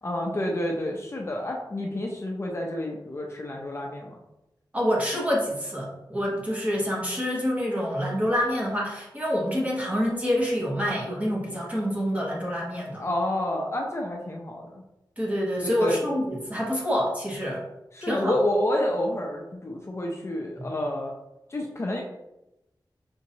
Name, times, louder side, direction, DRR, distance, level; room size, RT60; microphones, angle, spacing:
voice 1, 0.0-4.2 13.0-14.8 15.6-16.0 17.9-21.1 21.5-22.0, left 1 dB, 35° left, 0 dB, 0.5 m, -29 dB
voice 2, 4.7-13.0 15.2-17.6 18.0-18.4 20.6-20.7, equal, 20° right, -4 dB, 1.2 m, -27 dB
5.1 x 2.8 x 2.7 m, 0.92 s
wide cardioid pair, 110°, 8 cm